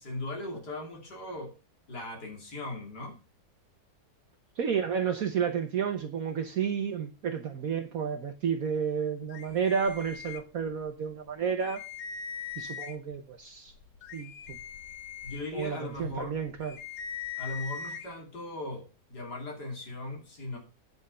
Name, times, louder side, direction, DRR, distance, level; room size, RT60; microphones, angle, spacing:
voice 1, 0.0-1.5 1.9-3.2 15.2-16.3 17.4-20.6, left 2 dB, 65° left, 3.4 m, -38 dB
voice 2, 4.6-11.8 12.6-13.7 14.1-14.6 15.5-16.8, right 7 dB, 60° right, 1.2 m, -31 dB
sound 1, 9.3-10.9 11.3-11.4 11.6-13.2 13.7-18.1, left 7 dB, 85° left, 1.6 m, -41 dB
8.7 x 6.2 x 6.7 m
omnidirectional pair, 1.9 m